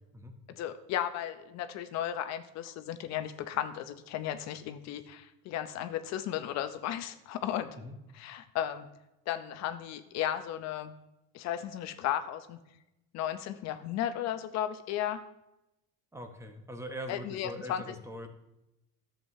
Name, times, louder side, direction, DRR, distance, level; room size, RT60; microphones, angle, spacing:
voice 1, 0.5-7.7 8.1-8.9 9.3-10.9 11.3-12.6 13.1-15.2 17.1-17.8, left 11 dB, 60° left, 10 dB, 0.6 m, -35 dB
voice 2, 16.1-18.3, equal, 10° right, 5 dB, 0.9 m, -42 dB
11.0 x 7.4 x 2.7 m, 0.91 s
cardioid pair, 125°, 30 cm